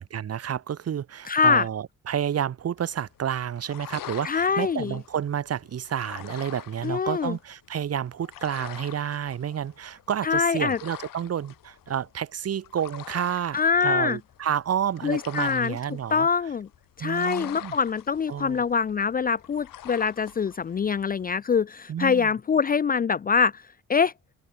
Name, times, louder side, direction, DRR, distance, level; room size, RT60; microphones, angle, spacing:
voice 1, 0.0-16.3 17.0-17.8 18.3-18.7 21.9-22.3, right 9 dB, 50° right, 2.7 m, -30 dB
voice 2, 1.3-1.6 4.2-5.0 6.8-7.3 10.2-10.8 13.5-14.2 15.0-15.7 16.1-16.7 17.0-23.6 23.9-24.1, left 6 dB, 30° left, 0.5 m, -24 dB
sound 1, 2.8-21.3, left 12 dB, 90° left, 3.1 m, -45 dB
open air
wide cardioid pair, 180°, 32 cm